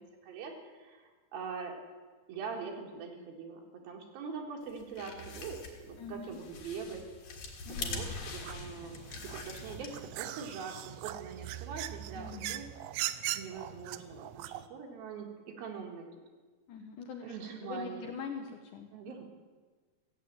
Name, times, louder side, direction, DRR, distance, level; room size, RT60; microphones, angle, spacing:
voice 1, 0.0-1.8 2.3-7.0 7.7-12.7 13.3-16.1 17.2-18.1 18.9-19.2, right 5 dB, 70° right, 2 dB, 3.6 m, -43 dB
sound 1, 4.7-10.2, left 4 dB, 55° left, 3.1 m, -43 dB
voice 2, 6.0-6.4 7.7-8.2 12.1-12.6 16.7-17.4 17.6-19.2, left 5 dB, 75° left, 4 dB, 2.0 m, -43 dB
sound 2, 8.0-14.7, right 14 dB, 85° right, 2.7 m, -41 dB
15.0 x 8.1 x 9.3 m, 1.4 s
omnidirectional pair, 4.6 m